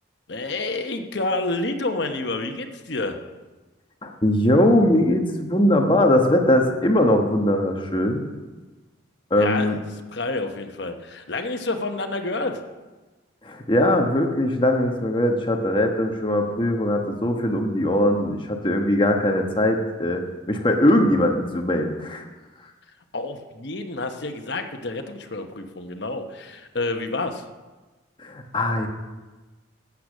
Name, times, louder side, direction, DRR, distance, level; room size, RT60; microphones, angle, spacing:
voice 1, 0.3-3.2 9.3-9.7 10.1-12.6 23.1-27.4, left 2 dB, 60° left, 6 dB, 1.0 m, -29 dB
voice 2, 4.0-8.2 9.3-9.8 13.4-20.2 20.5-22.2 28.2-28.9, left 1 dB, 25° left, 3 dB, 1.2 m, -20 dB
13.0 x 8.5 x 6.2 m, 1.2 s
head